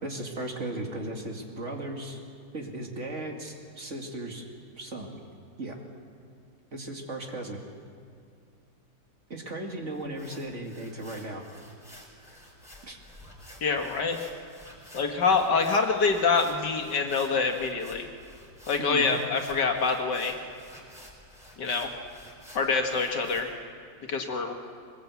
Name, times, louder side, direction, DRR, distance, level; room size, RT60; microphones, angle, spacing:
voice 1, 0.0-2.2 2.5-4.4 4.8-5.2 5.6-5.8 6.7-7.6 9.3-11.4 12.8-13.0 15.3-15.4 18.8-19.2, right 2 dB, 40° right, 1 dB, 2.4 m, -36 dB
sound 1, 9.9-23.4, left 1 dB, ahead, 4.9 m, -51 dB
voice 2, 13.6-14.2 14.9-18.1 18.7-20.4 21.6-21.9 22.5-23.5 24.1-24.5, left 4 dB, 75° left, 3 dB, 2.3 m, -25 dB
22.5 x 20.0 x 8.3 m, 2.2 s
omnidirectional pair, 1.9 m